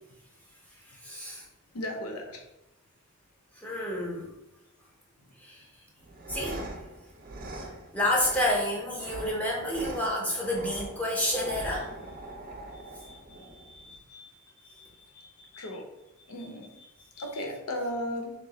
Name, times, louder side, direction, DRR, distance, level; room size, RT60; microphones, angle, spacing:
voice 1, 1.0-1.4 3.6-4.3 5.4-5.6 6.3-6.7 7.6-11.9 12.8-14.3 14.6-15.7 17.2-17.3, left 1 dB, 5° left, -3 dB, 0.6 m, -31 dB
voice 2, 1.7-2.4 15.6-15.8 16.3-16.7 17.2-18.3, left 1 dB, 75° left, 3 dB, 0.7 m, -35 dB
sound 1, 6.0-14.0, right 1 dB, 40° right, 0.5 m, -42 dB
3.0 x 2.3 x 3.9 m, 0.87 s
head